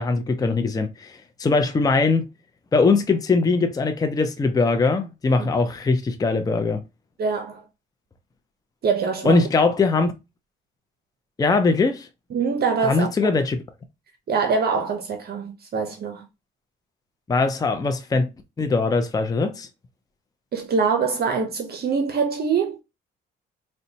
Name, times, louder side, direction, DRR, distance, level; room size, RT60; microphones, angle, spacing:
voice 1, 0.0-2.3 2.7-6.8 9.2-10.1 11.4-12.1 12.8-13.6 17.3-18.3 18.6-19.7, left 3 dB, 20° left, 0.5 m, -21 dB
voice 2, 7.2-7.6 8.8-9.5 12.3-13.1 14.3-16.3 20.5-22.8, right 5 dB, 50° right, 0.6 m, -24 dB
3.8 x 2.2 x 2.7 m
cardioid pair, 90°, 20 cm